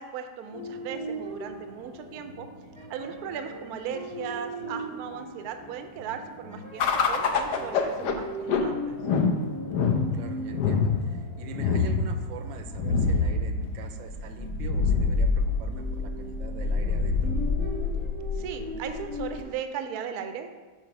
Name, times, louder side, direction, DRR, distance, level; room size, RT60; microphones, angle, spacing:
voice 1, 0.0-2.5 2.9-9.0 18.3-20.6, right 7 dB, 70° right, 7 dB, 1.0 m, -37 dB
sound 1, 0.5-19.4, right 1 dB, 40° left, 0.4 m, -40 dB
sound 2, 6.8-19.4, left 4 dB, 70° left, 1.2 m, -26 dB
voice 2, 9.7-17.4, right 6 dB, 85° right, 6 dB, 1.4 m, -43 dB
5.8 x 4.7 x 5.7 m, 1.3 s
omnidirectional pair, 2.0 m